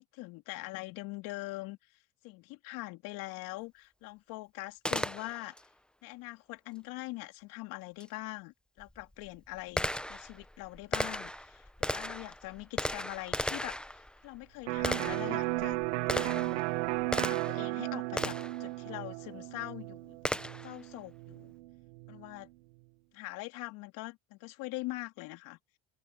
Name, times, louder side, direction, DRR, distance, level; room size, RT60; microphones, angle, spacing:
voice 1, 0.0-1.8 2.2-5.6 6.0-15.8 16.1-16.6 17.3-20.2 20.6-21.5 22.1-22.5 23.1-25.6, left 22 dB, 70° left, 3.4 m, -43 dB
Gunshot gunfire, 4.8-5.7 8.0-8.1 8.8-17.7 18.2-18.6 20.2-20.8, left 1 dB, 5° left, 1.1 m, -36 dB
Electric guitar, 14.7-22.3, right 20 dB, 85° right, 1.1 m, -35 dB
open air
hypercardioid pair, 75°, 35 cm